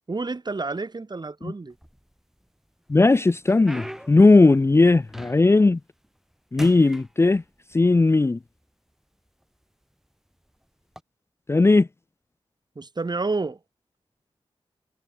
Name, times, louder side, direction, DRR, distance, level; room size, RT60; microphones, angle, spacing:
voice 1, 0.1-1.7 12.8-13.6, right 3 dB, 40° right, 7.8 m, -29 dB
sound 1, 1.7-2.5 2.9-5.7 6.0-6.3 6.6-7.8 8.6-8.7 9.4-9.6 10.8-11.0, equal, 5° right, 4.7 m, -42 dB
voice 2, 2.9-5.8 6.5-7.4 7.7-8.4 11.5-11.9, left 3 dB, 25° left, 0.5 m, -17 dB
wide cardioid pair, 80°, 11 cm